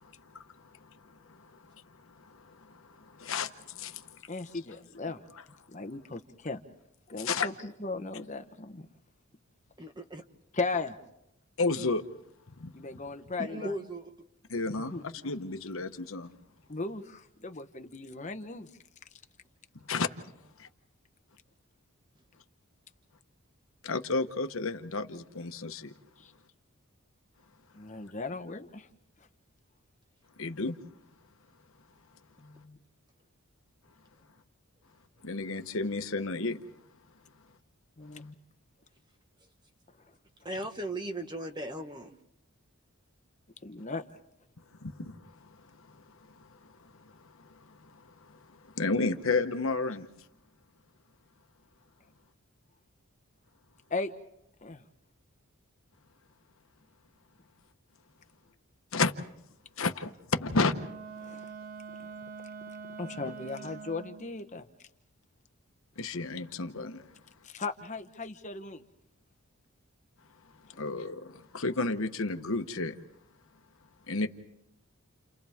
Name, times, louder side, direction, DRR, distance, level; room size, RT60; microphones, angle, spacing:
voice 1, 0.0-4.2 7.2-7.5 11.6-12.0 12.6-12.7 14.5-16.3 19.9-20.1 20.6-20.7 23.8-25.9 30.4-30.8 35.2-36.6 44.8-46.0 46.4-50.1 58.9-59.1 59.8-60.7 63.1-63.3 66.0-67.1 70.7-72.9 74.1-74.3, left 3 dB, 70° left, 8 dB, 1.1 m, -33 dB
voice 2, 4.3-5.2 5.7-6.6 7.1-7.5 7.8-8.9 10.5-10.9 12.7-13.7 14.9-15.0 16.7-18.7 26.2-26.3 27.7-28.9 32.4-32.8 38.0-38.3 43.6-44.0 53.9-54.1 54.6-54.8 61.2-61.5 63.0-64.7 67.4-68.8 70.7-70.8, left 3 dB, 35° left, 7 dB, 0.9 m, -37 dB
voice 3, 9.8-10.2 13.4-14.1 40.4-42.1, right 1 dB, 20° right, 5 dB, 1.4 m, -37 dB
Wind instrument woodwind instrument, 60.7-64.4, right 5 dB, 40° right, 0.9 m, -44 dB
30.0 x 29.5 x 3.6 m, 0.80 s
head